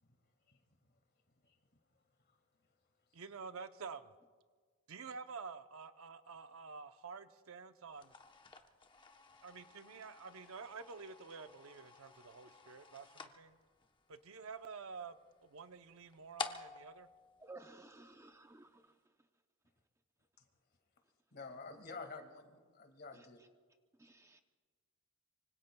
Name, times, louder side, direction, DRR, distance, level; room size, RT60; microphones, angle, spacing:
voice 1, 3.1-4.1 4.9-8.1 9.4-13.6 14.1-15.2 15.4-17.1, right 5 dB, 70° right, 0.7 m, -49 dB
sound 1, 7.9-18.3, left 4 dB, 25° left, 0.9 m, -51 dB
voice 2, 17.4-18.8 24.0-24.4, right 2 dB, 15° right, 0.6 m, -55 dB
voice 3, 21.3-23.4, left 4 dB, 50° left, 2.0 m, -50 dB
25.0 x 25.0 x 2.3 m
head